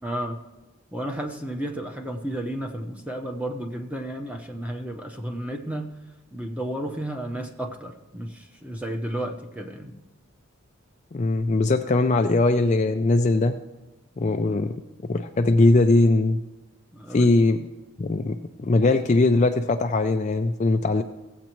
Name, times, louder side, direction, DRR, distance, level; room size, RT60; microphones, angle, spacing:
voice 1, 0.0-0.4 0.9-5.9 6.3-9.9 16.9-17.3, right 1 dB, 5° right, 4 dB, 0.8 m, -32 dB
voice 2, 11.1-13.5 14.2-14.7 15.1-16.4 17.1-17.6 18.0-21.0, left 2 dB, 35° left, 7 dB, 0.3 m, -20 dB
16.0 x 8.1 x 3.0 m, 1.1 s
head